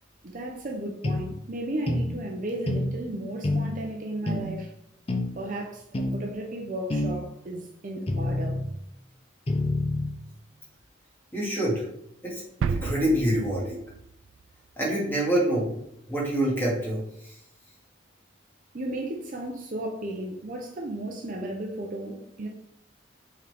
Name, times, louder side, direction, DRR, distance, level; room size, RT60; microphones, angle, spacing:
voice 1, 0.2-4.7 5.4-8.6 18.7-22.5, right 1 dB, 40° right, 0.6 m, -34 dB
sound 1, 1.0-1.3 1.9-2.1 2.7-2.9 3.4-3.7 4.3-4.5 5.1-5.3 5.9-6.2 6.9-7.2 8.1-8.7 9.5-10.1, left 2 dB, 30° left, 0.6 m, -27 dB
voice 2, 11.3-11.8 12.2-13.8 14.8-15.8 16.1-17.4, right 1 dB, 10° left, 2.0 m, -26 dB
sound 2, 12.6-14.5 14.7-14.8, right 6 dB, 75° right, 0.3 m, -32 dB
7.1 x 3.8 x 3.5 m
head